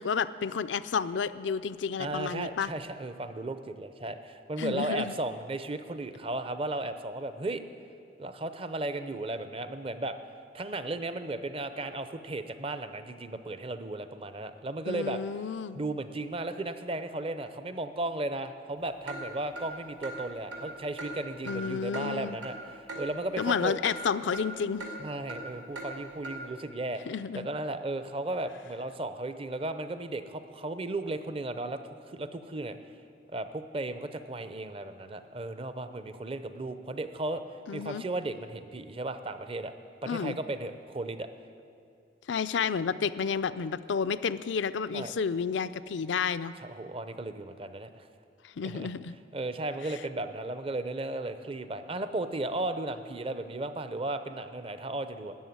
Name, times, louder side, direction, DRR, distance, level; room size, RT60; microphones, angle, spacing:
voice 1, 0.0-2.7 4.6-5.1 14.9-15.8 21.4-22.4 23.4-24.9 27.1-27.5 37.7-38.0 40.1-40.4 42.3-46.5 48.6-49.2, left 6 dB, 80° left, 14 dB, 0.4 m, -31 dB
voice 2, 2.0-7.6 8.2-10.2 10.5-15.2 15.7-23.8 25.0-27.0 27.3-32.8 33.3-37.4 37.7-39.7 40.0-41.3 44.9-45.1 46.6-48.1 48.6-48.9 49.3-55.3, right 2 dB, 30° right, 10 dB, 0.6 m, -35 dB
Clock, 19.1-19.2 19.6-19.7 20.0-20.2 20.5-20.6 21.0-21.1 21.5-21.6 21.9-22.1 22.4-22.5 22.9-23.0 23.4-23.5 23.8-24.0 24.3-24.5 24.8-24.9 25.3-25.4 25.8-25.9 26.2-26.4, right 2 dB, 75° right, 2.5 m, -39 dB
13.0 x 8.0 x 9.3 m, 2.4 s
head